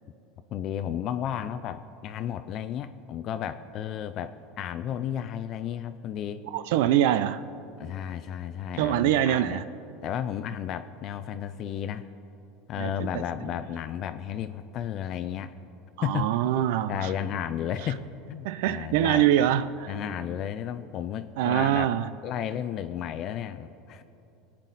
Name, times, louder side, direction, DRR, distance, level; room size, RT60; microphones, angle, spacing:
voice 1, 0.5-6.4 7.8-9.6 10.0-12.1 12.7-15.6 16.0-16.3 16.9-18.0 18.3-19.5 19.9-21.9 22.2-24.0, left 9 dB, 40° left, 0.5 m, -33 dB
voice 2, 6.5-7.4 8.8-9.6 12.8-13.1 16.0-17.1 18.4-19.9 21.4-22.1, right 11 dB, 75° right, 0.4 m, -24 dB
23.5 x 8.9 x 4.1 m
supercardioid pair, 135°, 0 cm